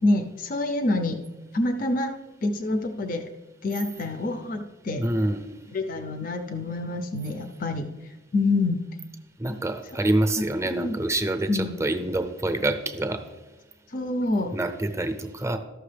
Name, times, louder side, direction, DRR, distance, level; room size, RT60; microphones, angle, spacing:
voice 1, 0.0-1.2 1.5-2.1 2.4-3.3 3.6-5.0 5.7-7.9 8.3-8.9 10.7-11.0 11.5-11.7 13.9-14.5, left 2 dB, 45° left, 7 dB, 0.5 m, -26 dB
voice 2, 5.0-5.4 9.4-13.2 14.5-15.6, right 1 dB, 15° right, 7 dB, 0.6 m, -26 dB
13.0 x 6.0 x 3.3 m, 1.1 s
head